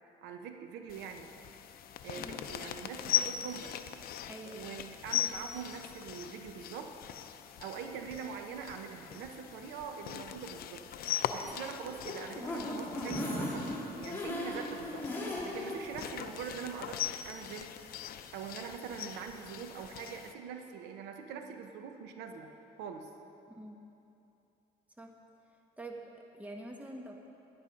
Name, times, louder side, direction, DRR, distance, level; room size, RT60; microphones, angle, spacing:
voice 1, 0.2-1.3 2.0-3.8 4.5-7.0 7.6-10.8 11.3-13.7 13.9-17.8 18.3-22.5 22.8-23.1, right 6 dB, 90° right, 5 dB, 0.9 m, -43 dB
sound 1, 0.9-20.3, left 10 dB, 60° left, 0.6 m, -40 dB
voice 2, 4.3-4.6 23.5-23.8 25.0-25.1 25.8-27.2, right 1 dB, 10° right, 2 dB, 1.1 m, -45 dB
sound 2, 11.8-15.8 16.2-16.3 16.6-16.7, left 1 dB, 10° left, 2.7 m, -37 dB
11.0 x 9.8 x 5.2 m, 2.8 s
cardioid pair, 110°, 17 cm